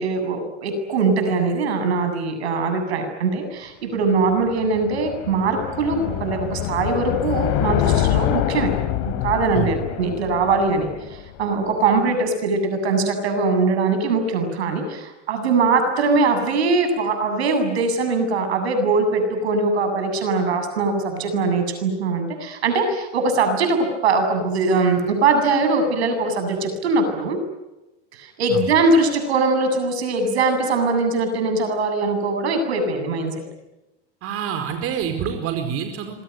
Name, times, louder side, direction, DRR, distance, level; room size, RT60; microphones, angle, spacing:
voice 1, 0.0-8.7 9.0-27.4 28.1-33.4, right 3 dB, 90° right, 7 dB, 7.9 m, -21 dB
sound 1, 4.1-11.5, left 12 dB, 60° left, 3.6 m, -25 dB
voice 2, 34.2-36.2, right 7 dB, 50° right, 6 dB, 4.8 m, -27 dB
27.5 x 23.0 x 9.4 m, 0.98 s
supercardioid pair, 105°, 31 cm